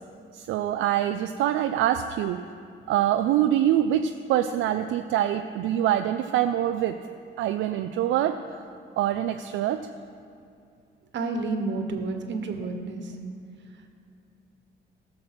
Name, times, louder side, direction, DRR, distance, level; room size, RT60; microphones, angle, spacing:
voice 1, 0.3-2.4 2.9-6.9 7.4-8.4 9.0-9.8, right 11 dB, 85° right, 7 dB, 0.4 m, -24 dB
voice 2, 11.1-13.1, right 3 dB, 65° right, 5 dB, 1.3 m, -30 dB
14.5 x 6.3 x 6.0 m, 2.5 s
cardioid pair, 90°, 20 cm